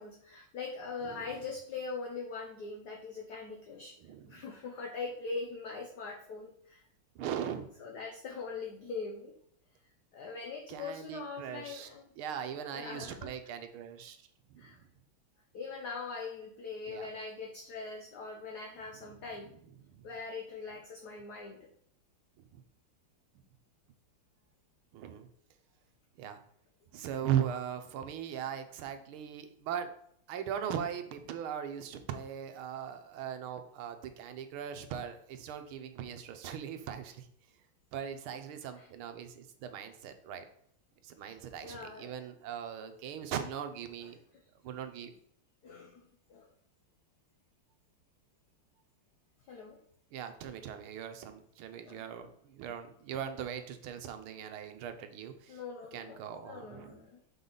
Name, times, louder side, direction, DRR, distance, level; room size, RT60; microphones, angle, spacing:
voice 1, 0.0-3.9 4.3-6.8 7.8-9.3 10.1-12.0 12.7-13.3 14.6-14.8 15.5-19.5 20.0-21.6 38.8-38.9 41.2-41.4 41.6-42.1 45.6-46.5 49.5-49.8 51.8-52.0 55.5-57.2, left 4 dB, 60° left, 1 dB, 1.2 m, -42 dB
voice 2, 4.0-4.4 7.1-7.7 10.7-11.9 12.2-14.2 14.5-14.9 16.9-17.1 18.9-19.1 19.8-20.1 22.5-22.6 24.9-25.3 26.2-26.4 26.9-29.9 30.3-37.3 37.9-40.4 41.0-44.2 44.6-45.1 50.1-55.6 55.9-57.0, right 9 dB, 75° right, 8 dB, 1.6 m, -39 dB
6.5 x 5.5 x 4.0 m, 0.69 s
omnidirectional pair, 2.4 m